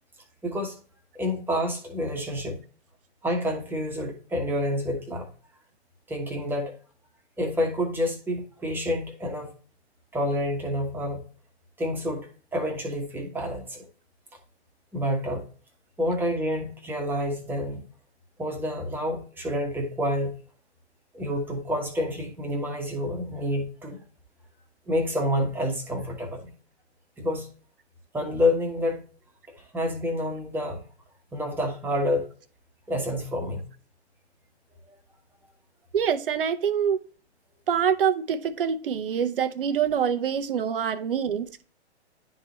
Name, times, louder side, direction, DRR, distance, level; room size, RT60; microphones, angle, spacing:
voice 1, 0.4-0.8 1.1-2.6 3.2-5.3 6.1-6.7 7.4-9.5 10.1-11.2 11.8-13.9 14.9-15.4 16.0-17.8 18.4-20.3 21.1-24.0 24.9-26.5 27.2-27.5 28.1-29.0 29.6-30.8 31.3-32.3 32.9-33.6, left 1 dB, 5° right, 1.3 m, -28 dB
voice 2, 35.9-37.0 37.7-41.6, right 8 dB, 50° right, 0.8 m, -25 dB
11.0 x 3.8 x 3.0 m
figure-of-eight pair, 120°, 34 cm